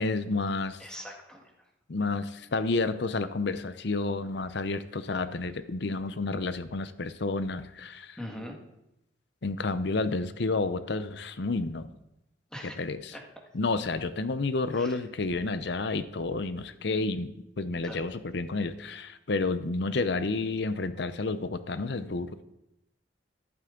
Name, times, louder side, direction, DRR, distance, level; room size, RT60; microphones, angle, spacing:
voice 1, 0.0-0.8 1.9-8.2 9.4-11.9 12.6-13.2 13.5-22.3, left 3 dB, 65° left, 12 dB, 0.7 m, -30 dB
voice 2, 0.8-1.4 8.2-8.6 12.5-12.8 13.1-13.2 14.7-15.0 17.8-18.1, equal, 5° left, 0 dB, 1.7 m, -41 dB
13.0 x 11.5 x 3.8 m, 0.88 s
head